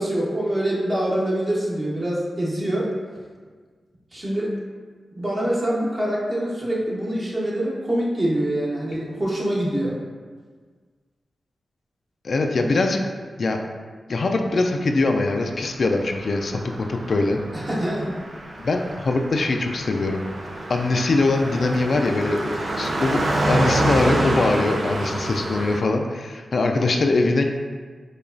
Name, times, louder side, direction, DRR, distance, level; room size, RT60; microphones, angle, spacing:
voice 1, 0.0-2.9 4.1-4.5 5.1-9.9 17.5-18.1, right 1 dB, 35° right, -5 dB, 1.1 m, -25 dB
voice 2, 12.2-13.0 13.4-13.6 14.1-17.4 18.6-20.2 20.7-27.4, left 2 dB, 65° left, 4 dB, 0.3 m, -22 dB
Car passing by, 15.9-25.8, right 1 dB, 60° right, 0.5 m, -27 dB
4.8 x 2.3 x 2.6 m, 1.5 s
cardioid pair, 45°, 0 cm